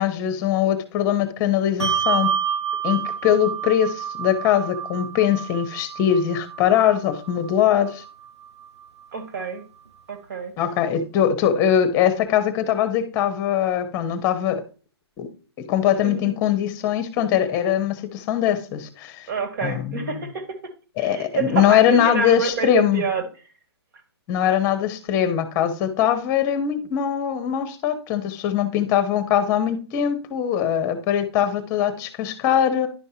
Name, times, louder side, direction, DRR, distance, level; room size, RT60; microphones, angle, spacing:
voice 1, 0.0-2.3 2.8-8.0 10.6-14.6 15.2-15.3 15.7-19.3 19.6-20.1 21.0-23.0 24.3-32.9, left 9 dB, 20° left, 1.0 m, -21 dB
Bell, 1.8-8.7, right 8 dB, 85° right, 1.2 m, -29 dB
voice 2, 9.1-9.6 10.1-10.5 16.0-16.4 19.3-20.7 21.0-23.3, right 4 dB, 50° right, 2.1 m, -28 dB
11.0 x 5.4 x 2.8 m
hypercardioid pair, 155°, 14 cm